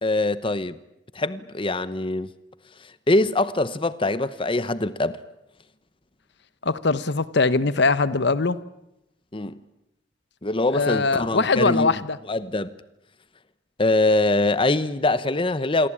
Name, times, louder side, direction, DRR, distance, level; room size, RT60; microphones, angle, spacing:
voice 1, 0.0-0.8 1.1-2.3 3.1-5.2 9.3-9.6 10.4-12.0 12.3-12.8 13.8-15.9, left 2 dB, 25° left, 0.9 m, -23 dB
voice 2, 6.6-8.6 10.7-12.2, left 3 dB, 60° left, 1.0 m, -21 dB
27.0 x 22.5 x 8.7 m
head